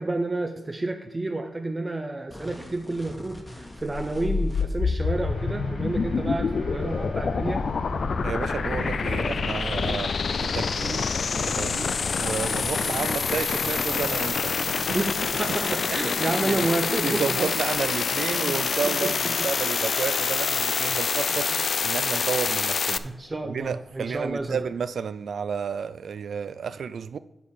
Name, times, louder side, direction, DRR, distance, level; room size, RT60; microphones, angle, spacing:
voice 1, 0.0-7.7 14.9-17.4 18.3-18.6 18.8-19.1 23.0-24.6, right 2 dB, 25° right, 0.7 m, -30 dB
sound 1, 2.3-5.0, left 1 dB, 15° left, 1.3 m, -44 dB
sound 2, 3.8-23.0, left 5 dB, 60° left, 0.4 m, -27 dB
sound 3, 5.0-24.7, left 1 dB, 85° left, 3.3 m, -41 dB
voice 2, 8.2-15.0 15.7-16.7 17.0-23.0 23.4-27.2, right 6 dB, 75° right, 0.3 m, -32 dB
9.3 x 4.6 x 7.2 m
wide cardioid pair, 145°, 0 cm